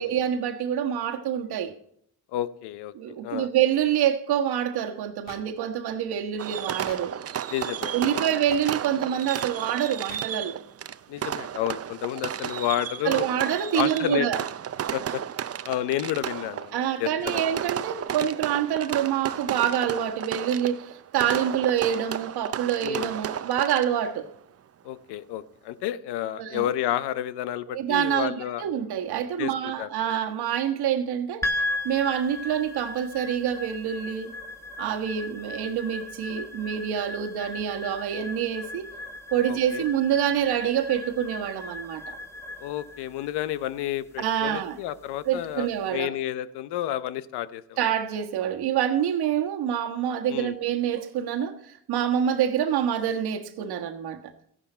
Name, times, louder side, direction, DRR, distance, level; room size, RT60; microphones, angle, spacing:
voice 1, 0.0-1.7 2.9-7.2 7.9-10.6 13.0-14.4 16.7-24.3 26.4-26.6 27.7-31.5 31.8-34.3 34.8-38.9 39.3-42.2 44.2-44.8 45.2-46.1 47.8-54.2, right 9 dB, 70° right, 1.5 m, -26 dB
voice 2, 2.3-3.5 7.5-8.2 11.1-13.3 13.7-14.3 14.9-15.2 15.7-17.4 22.8-23.1 24.8-28.6 29.4-29.9 39.5-39.8 42.6-47.8 50.3-50.5, left 12 dB, 80° left, 0.8 m, -31 dB
sound 1, 5.3-5.4 6.9-7.0 8.5-8.6 10.1-10.2, left 6 dB, 55° left, 1.7 m, -44 dB
Fireworks, 6.4-24.2, right 9 dB, 40° right, 0.6 m, -33 dB
sound 2, 31.4-45.8, left 2 dB, 5° left, 1.8 m, -37 dB
14.0 x 11.0 x 4.4 m
supercardioid pair, 70°, 39 cm